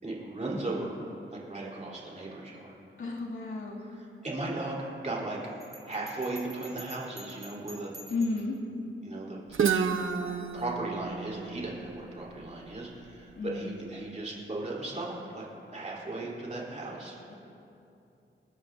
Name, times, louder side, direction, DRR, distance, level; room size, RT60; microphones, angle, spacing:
voice 1, 0.0-0.9 1.3-2.7 3.8-4.8 5.0-5.4 5.8-7.9 9.0-9.4 10.5-15.5 15.7-17.4, right 2 dB, 35° right, -5 dB, 3.7 m, -36 dB
voice 2, 3.0-3.8 8.1-8.5 13.4-13.8 17.3-17.4, left 3 dB, 75° left, -4 dB, 2.5 m, -32 dB
Bell, 5.6-8.6, equal, 15° right, 1.3 m, -49 dB
Guitar, 9.5-13.3, right 6 dB, 75° right, 0.8 m, -31 dB
29.0 x 13.5 x 2.7 m, 2.7 s
wide cardioid pair, 130°, 21 cm